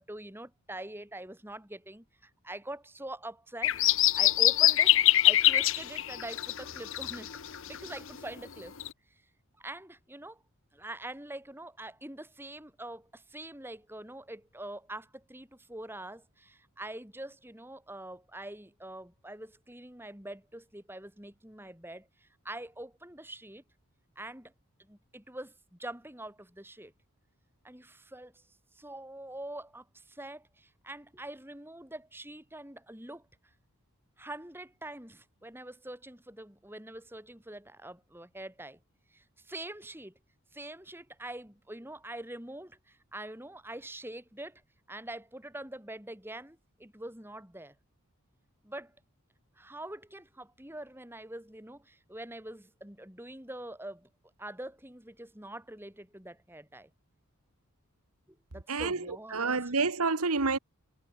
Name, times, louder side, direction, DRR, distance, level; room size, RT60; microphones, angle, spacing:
voice 1, 0.0-3.8 4.1-7.3 7.7-8.7 9.1-9.2 9.6-10.4 10.7-23.6 24.1-24.5 24.8-26.9 27.6-28.4 28.7-33.3 34.2-38.8 39.1-40.1 40.5-44.6 44.9-47.7 48.6-48.9 49.6-54.1 54.4-56.9 58.3-59.6, right 1 dB, 10° right, 3.4 m, -44 dB
sound 1, 3.6-8.4 8.8-8.9, left 14 dB, 60° left, 0.9 m, -24 dB
voice 2, 58.7-60.6, right 4 dB, 80° right, 1.6 m, -29 dB
head